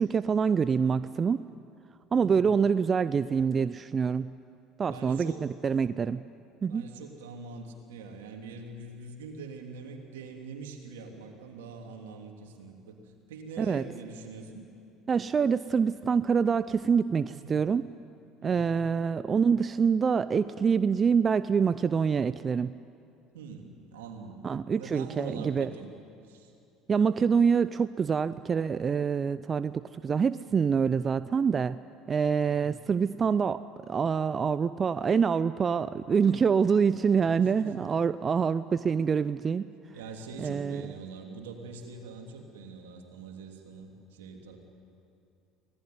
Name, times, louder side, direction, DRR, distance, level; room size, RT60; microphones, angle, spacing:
voice 1, 0.0-1.5 2.1-4.3 4.8-6.2 6.6-6.9 13.6-13.8 15.1-17.9 18.4-22.7 24.4-25.7 26.9-31.8 32.1-33.6 33.9-39.7 40.4-40.8, right 6 dB, 35° right, 15 dB, 0.5 m, -26 dB
voice 2, 2.1-2.5 4.8-5.4 6.7-14.6 17.3-17.6 18.4-18.8 23.3-24.4 24.7-25.9 26.2-26.5 32.4-32.8 37.3-37.9 39.9-44.6, right 4 dB, 80° right, 2 dB, 3.1 m, -43 dB
25.0 x 19.0 x 9.5 m, 2.5 s
hypercardioid pair, 70°, 0 cm